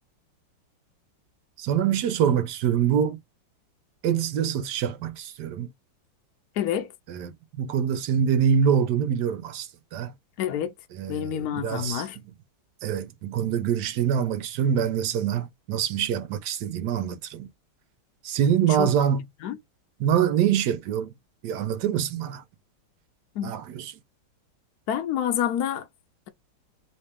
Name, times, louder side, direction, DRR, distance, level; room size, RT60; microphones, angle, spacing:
voice 1, 1.6-3.2 4.0-5.7 7.1-10.1 11.0-12.0 12.8-17.5 18.2-19.2 20.0-21.1 21.4-22.4 23.4-24.0, right 8 dB, 65° right, 1.2 m, -25 dB
voice 2, 6.6-6.9 10.4-10.7 11.1-12.2 18.8-18.9 19.4-19.6 23.3-23.6 24.9-25.9, left 10 dB, 70° left, 0.9 m, -28 dB
3.2 x 2.8 x 3.4 m
omnidirectional pair, 2.2 m